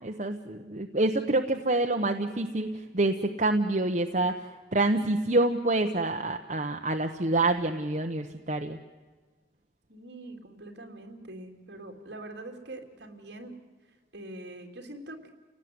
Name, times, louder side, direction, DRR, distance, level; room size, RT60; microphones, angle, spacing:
voice 1, 0.0-4.4 4.7-8.8, right 2 dB, 40° right, 4 dB, 1.0 m, -27 dB
voice 2, 9.9-13.5 14.1-15.3, right 1 dB, 65° right, 3 dB, 3.4 m, -43 dB
30.0 x 18.0 x 9.6 m, 1.4 s
head